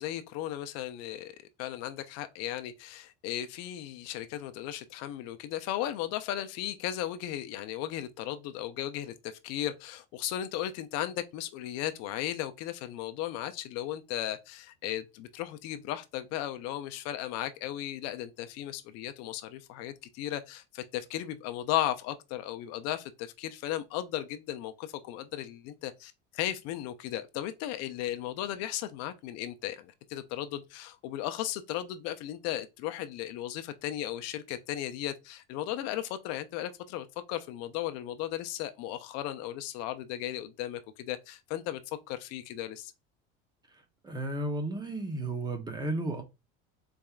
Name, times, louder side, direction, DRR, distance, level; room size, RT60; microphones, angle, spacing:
voice 1, 0.0-42.9, left 12 dB, 60° left, 0.5 m, -36 dB
voice 2, 44.0-46.2, right 2 dB, 15° right, 0.7 m, -33 dB
4.1 x 3.5 x 2.3 m
supercardioid pair, 130°, 29 cm